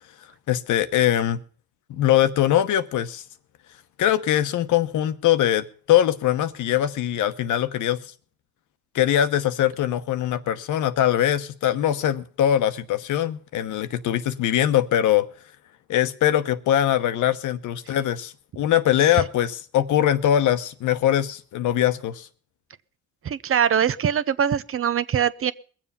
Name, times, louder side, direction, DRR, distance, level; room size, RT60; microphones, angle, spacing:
voice 1, 0.5-1.4 1.9-3.2 4.0-8.0 8.9-15.3 15.9-22.3, left 11 dB, 80° left, 11 dB, 1.0 m, -22 dB
voice 2, 23.2-25.5, right 8 dB, 45° right, 16 dB, 0.7 m, -22 dB
21.5 x 7.5 x 5.5 m, 0.42 s
cardioid pair, 90°, 30 cm